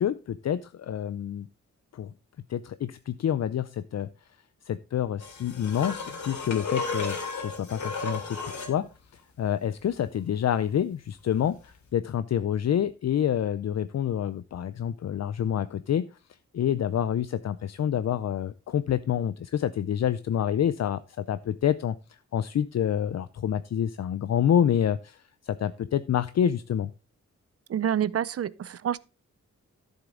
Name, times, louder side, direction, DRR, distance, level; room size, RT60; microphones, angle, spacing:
voice 1, 0.0-1.5 1.9-2.1 2.5-4.1 4.7-8.9 9.4-16.1 16.5-22.0 22.3-26.9, left 9 dB, 60° left, 0.5 m, -27 dB
sound 1, 5.2-8.8 11.7-11.8, left 4 dB, 80° left, 3.0 m, -34 dB
voice 2, 27.7-29.0, right 9 dB, 55° right, 0.5 m, -27 dB
13.0 x 7.3 x 3.7 m
wide cardioid pair, 170°, 29 cm